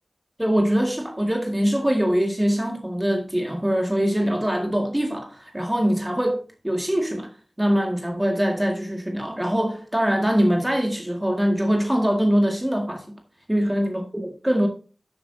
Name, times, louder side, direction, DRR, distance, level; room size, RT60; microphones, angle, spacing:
voice 1, 0.4-13.1 13.5-14.7, equal, 15° right, 1.8 m, -23 dB
10.5 x 7.7 x 2.7 m
cardioid pair, 45°, 0 cm